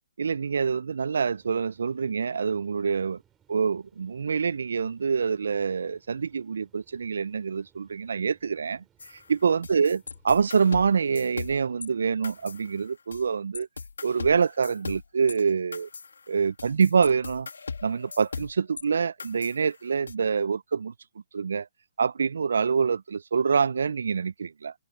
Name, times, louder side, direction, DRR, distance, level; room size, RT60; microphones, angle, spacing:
voice 1, 0.2-3.2 3.5-8.8 9.3-13.7 14.0-15.9 16.3-17.5 17.8-20.9 21.3-21.7 22.0-24.7, right 6 dB, 70° right, 0.4 m, -26 dB
sound 1, 1.3-12.9, right 10 dB, 15° right, 5.9 m, -66 dB
sound 2, 9.0-11.9 12.2-13.3 13.5-18.8 19.2-20.1, left 4 dB, 80° left, 2.3 m, -39 dB
hypercardioid pair, 140°, 0 cm